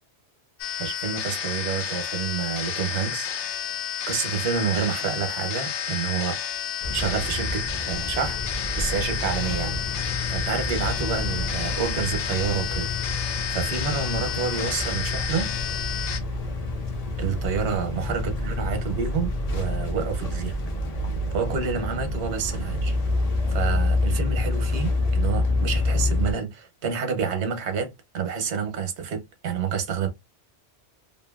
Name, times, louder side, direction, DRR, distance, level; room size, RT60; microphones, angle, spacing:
sound 1, 0.6-16.2, left 8 dB, 80° left, 0.9 m, -31 dB
voice 1, 0.8-3.3 3.6-3.7 4.1-6.4 6.9-8.4 8.7-15.5 17.2-20.5 21.3-23.0 23.5-30.1, right 6 dB, 70° right, 1.0 m, -29 dB
sound 2, 6.8-26.3, left 2 dB, 45° left, 0.6 m, -28 dB
2.7 x 2.6 x 2.3 m
omnidirectional pair, 1.2 m